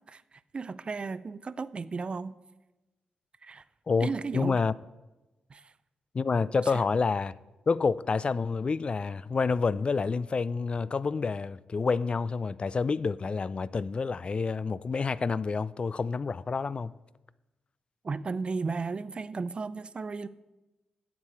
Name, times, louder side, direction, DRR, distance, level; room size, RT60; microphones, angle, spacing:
voice 1, 0.5-2.4 3.4-3.6 4.0-4.6 5.5-5.7 6.7-6.8 18.0-20.3, right 4 dB, 40° right, 0.4 m, -34 dB
voice 2, 3.9-4.7 6.1-7.3 7.7-16.9, left 4 dB, 40° left, 0.4 m, -28 dB
12.0 x 8.1 x 4.4 m
cardioid pair, 60°, 3 cm